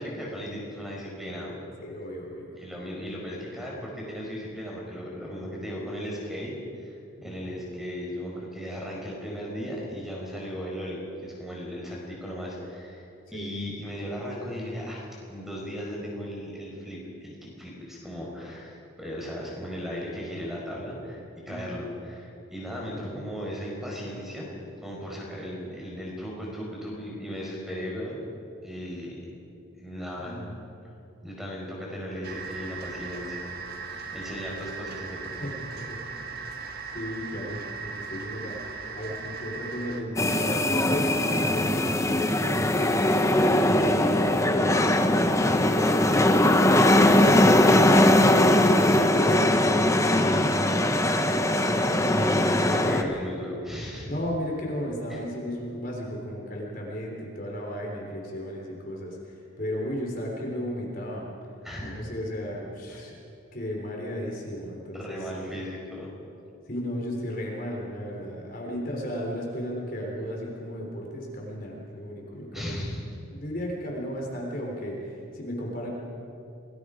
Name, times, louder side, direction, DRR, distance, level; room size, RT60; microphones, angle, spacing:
voice 1, 0.0-1.6 2.6-13.0 13.3-28.2 28.6-29.2 29.8-30.4 31.2-33.4 33.9-35.3 52.6-54.1 55.1-55.2 61.6-62.0 62.9-63.0 64.9-66.1 72.5-73.0, equal, ahead, -3 dB, 4.7 m, -36 dB
voice 2, 1.8-2.5 7.2-7.5 13.3-13.5 21.5-21.6 22.9-23.2 30.2-30.6 35.3-36.0 36.9-38.6 39.0-42.7 43.5-45.0 45.4-46.9 48.5-50.9 51.1-53.1 54.1-61.3 61.8-63.1 63.5-65.6 66.7-72.9 73.3-75.9, equal, 45° left, -1 dB, 3.6 m, -35 dB
sound 1, 32.2-40.0, right 5 dB, 45° right, 1.6 m, -38 dB
sound 2, 40.2-53.0, left 1 dB, 15° left, 0.9 m, -21 dB
27.5 x 20.0 x 5.0 m, 2.7 s
head